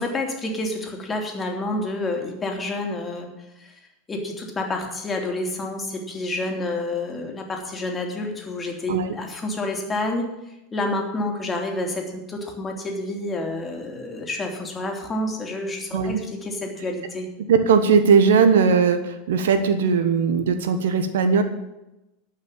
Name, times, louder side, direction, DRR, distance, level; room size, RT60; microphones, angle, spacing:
voice 1, 0.0-3.3 3.6-3.7 4.1-10.3 10.7-17.3, left 2 dB, 20° left, 2 dB, 3.0 m, -29 dB
voice 2, 17.5-21.4, right 5 dB, 70° right, 9 dB, 1.1 m, -19 dB
11.5 x 6.0 x 9.1 m, 0.94 s
hypercardioid pair, 85°, 0 cm